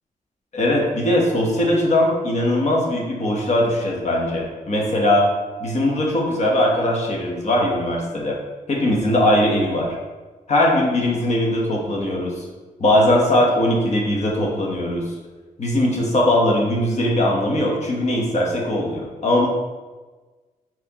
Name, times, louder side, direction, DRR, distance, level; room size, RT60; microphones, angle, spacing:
voice 1, 0.5-5.3 5.6-8.4 8.7-9.9 10.5-12.3 12.8-15.0 15.6-19.5, left 1 dB, 55° left, -1 dB, 1.1 m, -20 dB
4.3 x 4.2 x 2.9 m, 1.3 s
wide cardioid pair, 105°, 14 cm